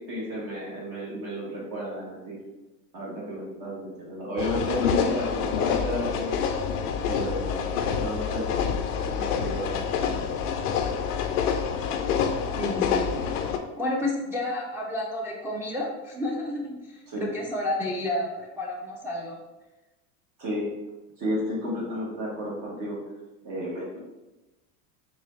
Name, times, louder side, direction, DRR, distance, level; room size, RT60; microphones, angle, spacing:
voice 1, 0.1-2.4 2.9-6.4 7.0-7.7 8.0-8.7 9.0-10.2 17.1-17.3 20.4-20.7 21.2-23.0 23.4-24.0, equal, 50° right, -5 dB, 1.4 m, -32 dB
sound 1, 4.4-13.6, left 7 dB, 85° left, 0.5 m, -27 dB
voice 2, 12.6-13.1 13.8-19.4, left 1 dB, 5° right, -4 dB, 0.4 m, -30 dB
3.9 x 2.4 x 3.1 m, 1.1 s
hypercardioid pair, 90°, 44 cm